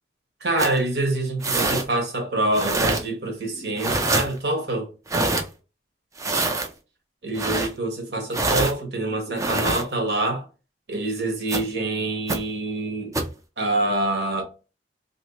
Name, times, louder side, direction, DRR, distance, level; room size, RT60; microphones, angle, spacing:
voice 1, 0.4-4.9 7.2-10.4 10.9-13.2 13.6-14.4, right 2 dB, 65° right, 1.2 m, -26 dB
sound 1, 0.6-0.8 1.4-1.8 2.5-3.0 3.8-4.3 5.1-5.4 6.2-6.7 7.4-7.7 8.3-8.7 9.4-9.8 11.5-11.6 12.3-12.4 13.1-13.3, right 2 dB, 20° right, 0.5 m, -24 dB
2.9 x 2.7 x 3.0 m
head